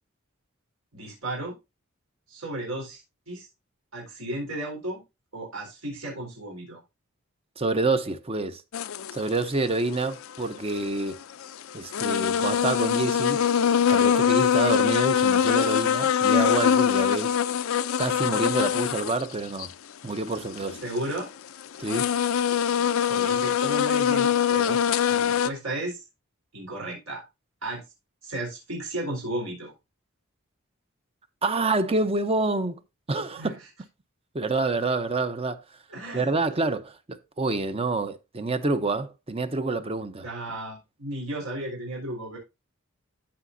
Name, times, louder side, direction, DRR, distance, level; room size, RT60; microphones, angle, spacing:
voice 1, 0.9-1.6 2.3-3.0 3.3-3.5 3.9-5.0 5.3-6.8 20.8-21.3 23.1-24.8 25.1-26.0 26.5-27.2 27.6-27.8 28.2-29.7 33.4-33.5 35.9-36.4 40.2-42.4, right 1 dB, 80° right, 4.0 m, -34 dB
voice 2, 7.6-8.6 9.1-11.2 11.7-13.5 13.9-17.3 18.0-19.7 20.0-20.8 21.8-22.1 31.4-32.8 33.1-33.6 34.3-35.6 36.1-40.3, right 3 dB, 30° right, 0.7 m, -27 dB
sound 1, 8.7-9.1 10.8-10.9 11.4-11.5 11.9-19.3 19.6-19.7 20.3-21.2 21.7-25.5, left 8 dB, 75° left, 0.5 m, -23 dB
14.5 x 5.0 x 2.6 m
head